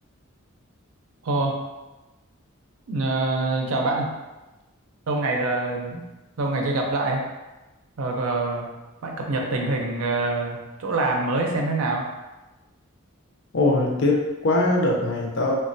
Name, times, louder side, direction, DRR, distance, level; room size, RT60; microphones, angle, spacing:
voice 1, 1.2-1.7 2.9-4.1 5.1-6.0 6.4-7.2 8.0-8.7 9.0-12.1, right 2 dB, 80° right, 0 dB, 0.5 m, -25 dB
voice 2, 13.5-15.5, left 2 dB, 55° left, -1 dB, 0.5 m, -22 dB
3.0 x 2.2 x 2.6 m, 1.1 s
head